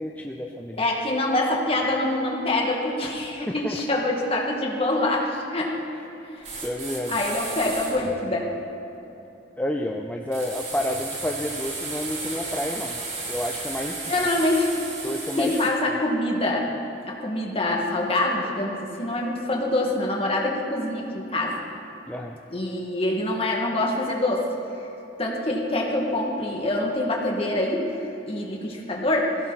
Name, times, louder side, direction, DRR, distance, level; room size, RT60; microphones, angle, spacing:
voice 1, 0.0-0.8 3.5-3.8 6.6-7.2 9.6-13.0 13.3-14.1 15.0-15.7 22.1-22.4, left 1 dB, 10° left, 2 dB, 0.6 m, -30 dB
voice 2, 0.8-5.8 6.3-6.5 7.1-8.5 14.1-14.9 15.4-16.7 17.1-21.6 22.5-24.4 25.2-28.0 28.3-29.3, left 1 dB, 35° left, -1 dB, 2.2 m, -25 dB
sound 1, 6.4-8.0 10.3-15.7, right 3 dB, 45° right, 3.5 m, -34 dB
20.5 x 16.5 x 4.2 m, 2.9 s
head